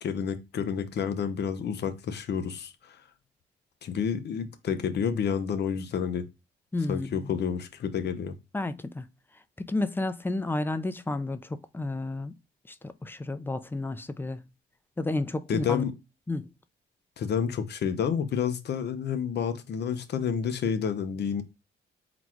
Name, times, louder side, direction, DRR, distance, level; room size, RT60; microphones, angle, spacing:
voice 1, 0.0-3.0 3.8-6.3 6.9-8.4 15.5-15.9 17.2-21.4, left 7 dB, 60° left, 0.8 m, -29 dB
voice 2, 6.7-7.3 8.5-9.1 9.6-12.3 12.7-14.4 15.0-15.8 16.3-16.5, left 2 dB, 10° left, 0.5 m, -31 dB
4.0 x 2.4 x 4.4 m
cardioid pair, 90°, 20 cm